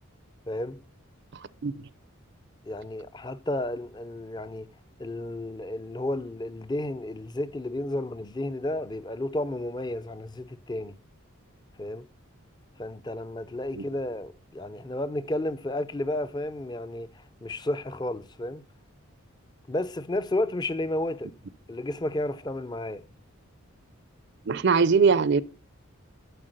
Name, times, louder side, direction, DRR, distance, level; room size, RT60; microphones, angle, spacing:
voice 1, 0.5-0.8 2.7-4.7 5.0-11.0 11.8-12.1 12.8-18.6 19.7-21.3 21.7-23.1, left 1 dB, 20° left, 0.5 m, -32 dB
voice 2, 24.5-25.4, right 5 dB, 50° right, 0.5 m, -21 dB
11.5 x 4.5 x 7.8 m
head